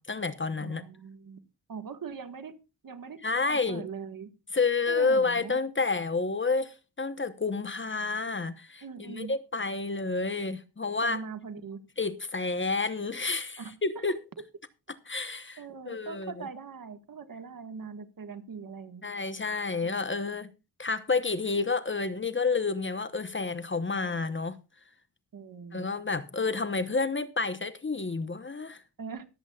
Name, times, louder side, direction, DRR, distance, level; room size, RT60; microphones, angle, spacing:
voice 1, 0.0-0.8 3.2-3.9 4.5-11.2 12.0-14.1 15.1-15.6 15.9-16.5 19.0-20.5 20.8-24.6 25.7-28.8, left 4 dB, 30° left, 0.9 m, -30 dB
voice 2, 0.6-1.4 1.7-2.5 2.8-3.2 3.5-4.3 4.9-5.6 8.8-9.3 11.0-11.8 13.6-14.0 15.6-19.1 19.8-20.0 24.0-24.2 25.3-25.9 29.0-29.2, right 5 dB, 55° right, 1.6 m, -41 dB
23.5 x 8.2 x 2.3 m
wide cardioid pair, 85°, 41 cm